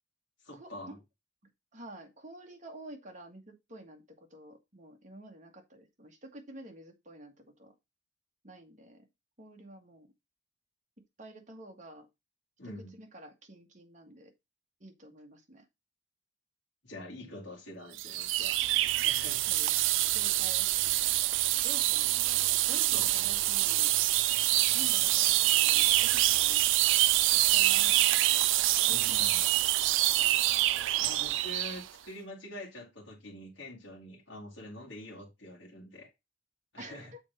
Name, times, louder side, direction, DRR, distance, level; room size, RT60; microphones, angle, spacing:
voice 1, 0.4-1.0 12.6-12.9 16.8-18.6 19.0-19.5 22.9-23.4 28.8-29.4 31.0-36.1 36.7-37.1, left 1 dB, 65° left, 1.9 m, -45 dB
voice 2, 1.7-7.7 8.4-9.1 9.4-10.1 11.2-12.1 12.6-14.3 14.8-15.6 17.2-17.3 19.5-19.7 20.1-21.1 21.6-22.0 22.7-23.9 24.7-26.6 27.3-28.5 28.9-29.6 36.8-37.2, right 1 dB, 40° right, 1.7 m, -49 dB
sound 1, 18.0-31.8, right 15 dB, 90° right, 0.4 m, -26 dB
6.7 x 4.2 x 5.2 m
head